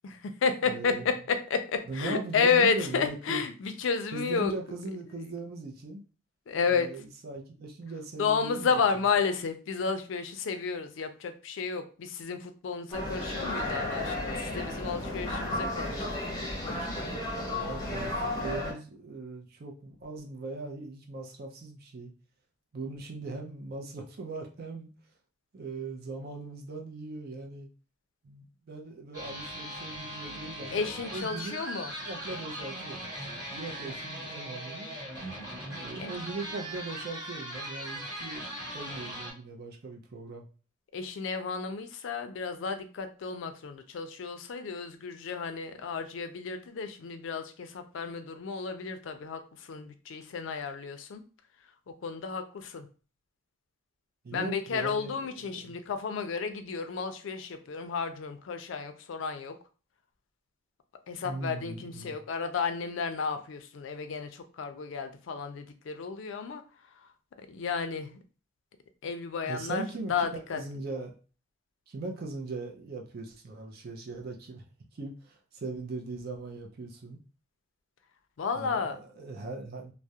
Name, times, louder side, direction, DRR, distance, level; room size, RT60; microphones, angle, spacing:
voice 1, 0.0-4.5 6.5-6.9 8.2-16.2 16.6-17.2 30.7-31.9 36.0-36.1 40.9-51.2 51.9-52.9 54.3-59.6 61.1-66.6 67.4-68.2 69.0-70.6 78.4-79.0, left 5 dB, 70° left, 8 dB, 0.4 m, -32 dB
voice 2, 0.7-1.1 1.9-3.5 4.1-6.0 6.7-8.8 17.5-18.1 18.4-22.1 22.7-24.9 25.5-27.7 28.2-31.6 32.0-33.1 33.5-34.9 35.7-40.5 54.2-55.2 55.5-55.7 61.2-62.2 69.5-71.1 71.9-74.6 74.9-77.2 78.5-79.9, right 3 dB, 50° right, 1 dB, 0.5 m, -39 dB
sound 1, 12.9-18.7, left 1 dB, 20° left, 0.7 m, -33 dB
sound 2, 29.1-39.3, right 1 dB, 20° right, 1.0 m, -39 dB
2.3 x 2.0 x 2.7 m, 0.37 s
head